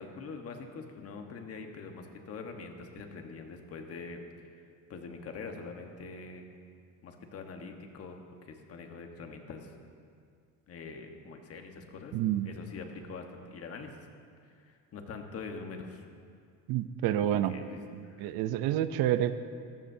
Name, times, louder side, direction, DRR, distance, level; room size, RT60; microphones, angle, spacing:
voice 1, 0.0-4.2 4.9-6.5 7.0-8.2 8.5-9.7 10.7-12.1 12.4-13.9 14.6-16.0 17.4-18.3, left 4 dB, 40° left, 4 dB, 1.3 m, -44 dB
voice 2, 12.1-12.5 16.7-17.5 17.9-19.3, right 12 dB, 70° right, 11 dB, 0.7 m, -28 dB
20.0 x 15.0 x 2.8 m, 2.2 s
cardioid pair, 150°, 37 cm